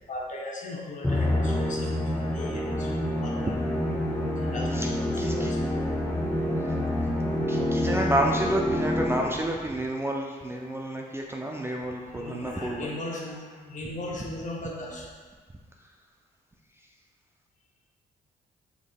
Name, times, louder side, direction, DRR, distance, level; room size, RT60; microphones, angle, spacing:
voice 1, 0.1-3.5 4.4-5.6 12.1-15.1, left 2 dB, 45° left, -2 dB, 0.8 m, -38 dB
Musical instrument, 1.0-9.5, left 1 dB, 10° left, 0.8 m, -27 dB
voice 2, 5.2-5.5 6.6-6.8 7.0-7.1 7.5-12.9, right 1 dB, 15° right, 0 dB, 0.4 m, -30 dB
3.6 x 3.5 x 2.2 m, 1.5 s
supercardioid pair, 50°, 18 cm